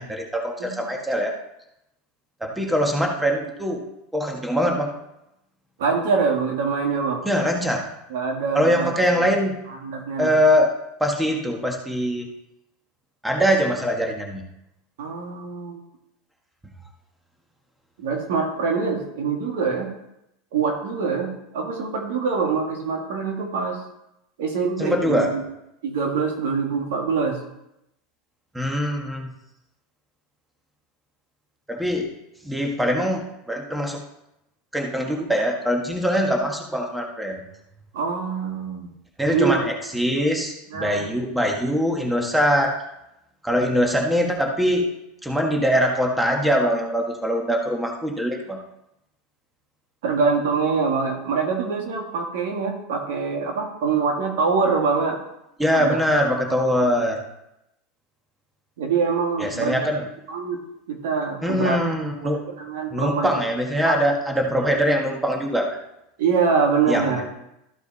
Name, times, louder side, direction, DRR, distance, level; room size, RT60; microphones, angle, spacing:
voice 1, 0.0-1.3 2.4-3.8 4.1-4.9 7.2-7.8 8.5-9.6 10.2-10.7 11.0-12.3 13.2-14.4 24.8-25.3 28.5-29.3 31.7-32.1 32.4-34.0 34.7-37.4 39.2-42.7 43.4-44.9 45.2-48.6 55.6-57.2 59.4-60.0 61.4-62.4 62.9-65.8 66.9-67.2, equal, 5° right, 1 dB, 1.6 m, -22 dB
voice 2, 5.8-7.2 8.1-8.9 9.7-10.3 15.0-15.8 18.0-19.9 20.5-23.8 24.4-25.4 25.8-27.4 37.9-38.9 39.3-39.6 40.7-41.0 50.0-55.2 55.7-56.0 56.8-56.9 58.8-59.9 60.3-60.6 60.9-61.8 62.2-63.3 63.9-64.0 66.2-67.2, right 5 dB, 80° right, 1 dB, 2.2 m, -24 dB
13.5 x 4.8 x 4.1 m, 0.84 s
supercardioid pair, 115°, 0 cm